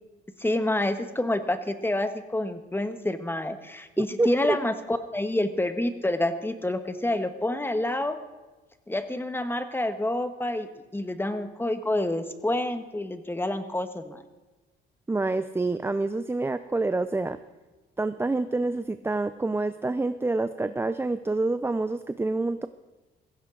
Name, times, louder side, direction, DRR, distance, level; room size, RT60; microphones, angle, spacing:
voice 1, 0.4-8.2 8.9-14.2, left 1 dB, 10° left, 9 dB, 1.3 m, -28 dB
voice 2, 4.0-4.6 15.1-17.4 18.0-22.7, right 2 dB, 10° right, 11 dB, 0.5 m, -27 dB
16.0 x 16.0 x 3.9 m, 1.2 s
cardioid pair, 90°, 20 cm